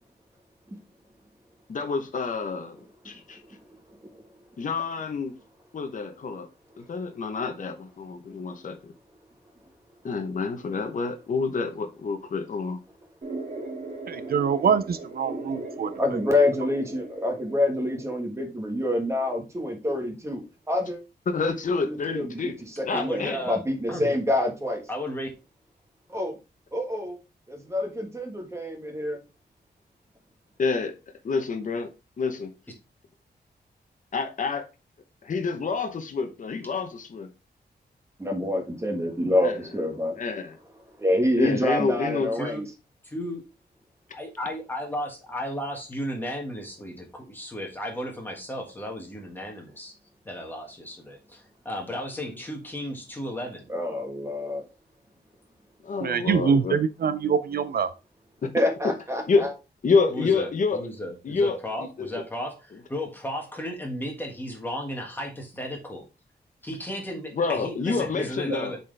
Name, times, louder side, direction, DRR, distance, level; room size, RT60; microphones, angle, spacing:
voice 1, 1.7-3.4 4.6-5.3 5.7-6.5 6.8-8.9 10.0-12.8 21.3-23.4 30.6-30.9 31.2-31.9 32.2-32.5 34.1-34.6 35.2-37.3 39.4-39.6 40.2-40.6 41.4-42.3 55.8-56.8 58.4-58.5 58.8-58.9 59.3-59.5 59.8-60.9 61.2-62.2 62.7-62.8 67.3-68.8, left 4 dB, 50° left, 0.9 m, -28 dB
sound 1, 13.2-18.2, right 2 dB, 40° right, 1.9 m, -38 dB
voice 2, 14.1-15.9 56.0-57.9, right 6 dB, 60° right, 0.5 m, -24 dB
voice 3, 16.0-21.0 21.9-22.5 22.9-24.8 26.1-26.4 26.7-27.1 27.5-29.2 38.2-40.2 41.0-42.6 53.7-54.6 58.5-59.5, left 1 dB, 15° right, 1.4 m, -27 dB
voice 4, 22.9-23.6 23.9-24.2 24.9-25.3 42.4-42.7 43.1-43.4 44.1-49.9 50.3-53.6 60.1-62.6 62.9-66.1 66.6-68.8, equal, 10° left, 1.6 m, -34 dB
7.3 x 4.3 x 3.3 m
wide cardioid pair, 180°, 17 cm